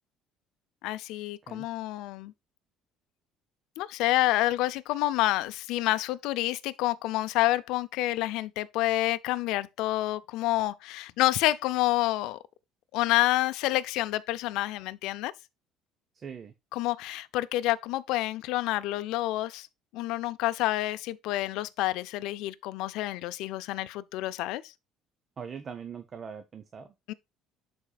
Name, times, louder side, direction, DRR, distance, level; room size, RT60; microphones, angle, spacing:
voice 1, 0.8-2.3 3.8-12.4 12.9-15.3 16.7-19.7 19.9-24.6 27.1-27.2, left 16 dB, 80° left, 0.4 m, -28 dB
voice 2, 16.1-16.5 25.4-26.9, right 7 dB, 35° right, 0.7 m, -41 dB
11.5 x 4.3 x 2.3 m
cardioid pair, 120°, 0 cm